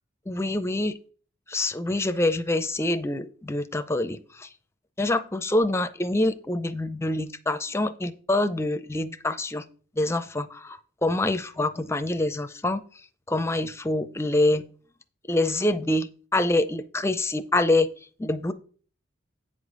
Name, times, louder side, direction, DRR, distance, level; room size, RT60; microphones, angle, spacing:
voice 1, 0.3-1.0 1.5-4.5 5.0-9.6 10.0-12.8 13.3-14.7 15.3-17.9 18.2-18.5, left 2 dB, 15° left, 11 dB, 0.5 m, -26 dB
8.5 x 5.0 x 5.3 m, 0.43 s
head